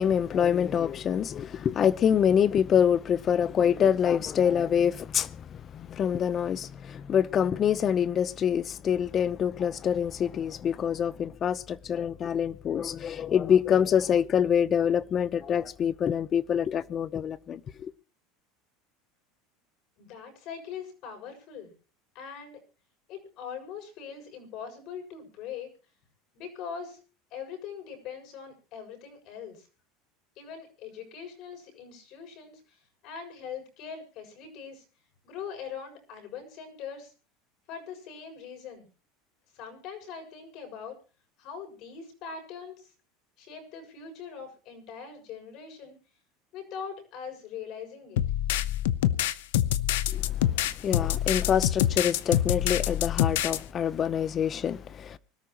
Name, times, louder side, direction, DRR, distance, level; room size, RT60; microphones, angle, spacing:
voice 1, 0.0-17.9 50.1-55.2, left 8 dB, 30° left, 0.9 m, -26 dB
voice 2, 20.0-21.7 22.1-22.6 23.1-25.7 26.3-27.0 27.3-29.7 30.3-34.8 35.2-37.1 37.7-38.9 39.5-41.0 41.4-42.9 43.4-46.0 46.5-48.2, left 7 dB, 55° left, 6.8 m, -42 dB
sound 1, 48.2-53.6, left 12 dB, 90° left, 0.9 m, -26 dB
25.0 x 13.0 x 3.0 m
supercardioid pair, 135°, 0 cm